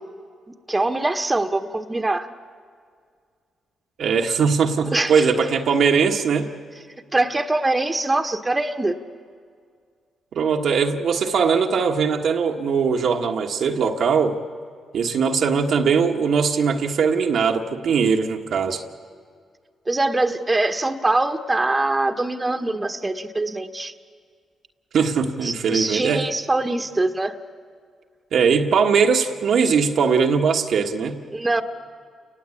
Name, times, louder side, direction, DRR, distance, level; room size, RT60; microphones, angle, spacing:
voice 1, 0.7-2.3 4.9-5.3 7.1-8.9 19.9-23.9 25.4-27.4 31.3-31.6, right 2 dB, 20° right, 7 dB, 1.4 m, -23 dB
voice 2, 4.0-6.5 10.3-14.4 14.9-18.8 24.9-26.3 28.3-31.2, right 5 dB, 70° right, 3 dB, 1.4 m, -20 dB
29.5 x 19.0 x 8.5 m, 2.1 s
supercardioid pair, 60°, 0 cm